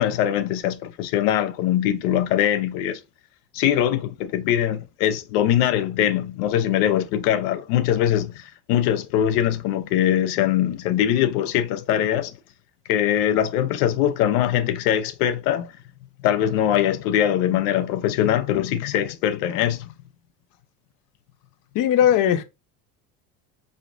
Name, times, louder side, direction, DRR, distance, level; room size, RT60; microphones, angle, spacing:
voice 1, 0.0-3.0 3.5-12.3 12.9-15.7 16.2-19.9, left 11 dB, 80° left, 0.7 m, -22 dB
voice 2, 21.7-22.4, left 10 dB, 45° left, 0.6 m, -18 dB
5.1 x 2.4 x 2.5 m
supercardioid pair, 105°, 46 cm